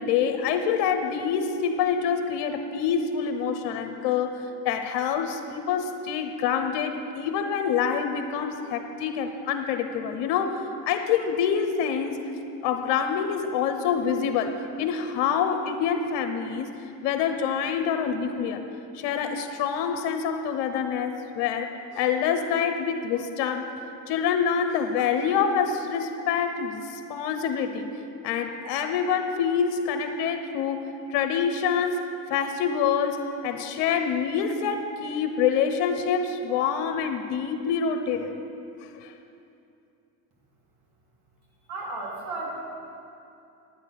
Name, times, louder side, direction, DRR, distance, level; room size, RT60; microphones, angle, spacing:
voice 1, 0.0-12.3 12.6-18.6 18.9-23.7 24.1-27.9 28.2-38.4 38.9-39.1, left 7 dB, 70° left, 7 dB, 1.0 m, -26 dB
voice 2, 41.7-42.5, right 2 dB, 55° right, -3 dB, 3.1 m, -33 dB
9.5 x 9.2 x 6.4 m, 2.6 s
hypercardioid pair, 75°, 45 cm